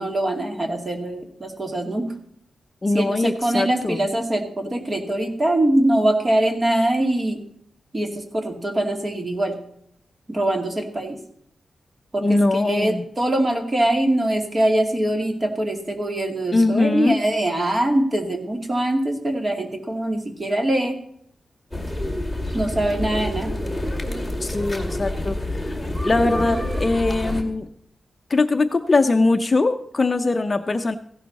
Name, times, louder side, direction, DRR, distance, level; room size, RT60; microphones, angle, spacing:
voice 1, 0.0-2.1 2.9-7.4 7.9-9.6 10.3-11.2 12.1-21.0 22.5-23.6, right 1 dB, 25° right, 4 dB, 2.4 m, -23 dB
voice 2, 2.8-4.0 12.2-13.0 16.5-17.2 24.4-25.8 26.0-27.7 28.3-31.0, left 2 dB, 30° left, 8 dB, 0.7 m, -21 dB
sound 1, 21.7-27.4, left 1 dB, ahead, 2.3 m, -27 dB
16.0 x 11.5 x 4.1 m, 0.67 s
wide cardioid pair, 150°, 0 cm